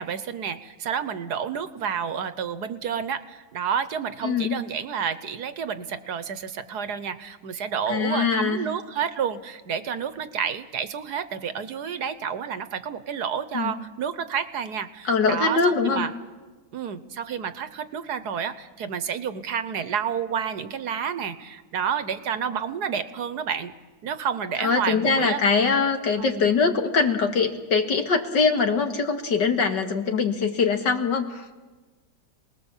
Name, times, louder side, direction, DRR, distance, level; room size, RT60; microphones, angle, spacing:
voice 1, 0.0-16.1 16.7-23.7 24.0-25.4 26.2-26.5, right 7 dB, 65° right, 12 dB, 1.4 m, -30 dB
voice 2, 4.2-4.6 7.9-8.6 13.5-13.7 15.1-16.1 24.6-31.6, left 5 dB, 70° left, 5 dB, 2.4 m, -23 dB
27.5 x 20.0 x 7.3 m, 1.3 s
omnidirectional pair, 1.9 m